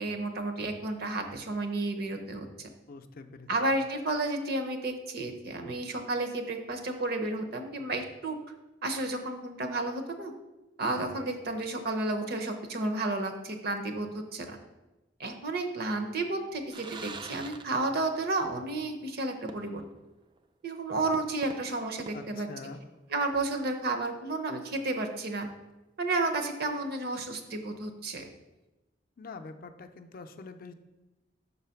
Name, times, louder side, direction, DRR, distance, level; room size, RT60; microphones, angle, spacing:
voice 1, 0.0-2.7 3.5-8.4 8.8-10.3 10.8-14.6 15.2-19.8 20.6-22.5 23.1-25.5 26.0-28.2, right 2 dB, 60° right, 6 dB, 0.7 m, -32 dB
voice 2, 2.9-3.5 22.1-22.8 29.2-30.7, left 4 dB, 50° left, 7 dB, 0.4 m, -45 dB
sound 1, 16.7-18.3 18.6-18.7 19.5-20.0 20.4-20.5 21.1-23.1, right 4 dB, 25° right, 0.3 m, -46 dB
5.7 x 4.0 x 5.7 m, 1.1 s
head